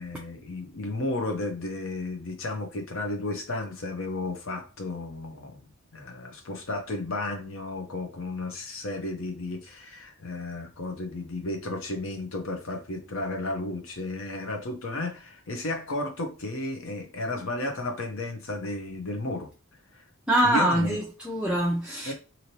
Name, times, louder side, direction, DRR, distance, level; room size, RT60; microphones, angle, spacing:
voice 1, 0.0-5.6 5.9-19.5 19.9-20.0 20.4-21.0 22.1-22.2, left 2 dB, 60° left, 0.8 m, -33 dB
voice 2, 20.3-22.1, right 1 dB, 5° right, 0.4 m, -24 dB
3.0 x 2.8 x 2.8 m
head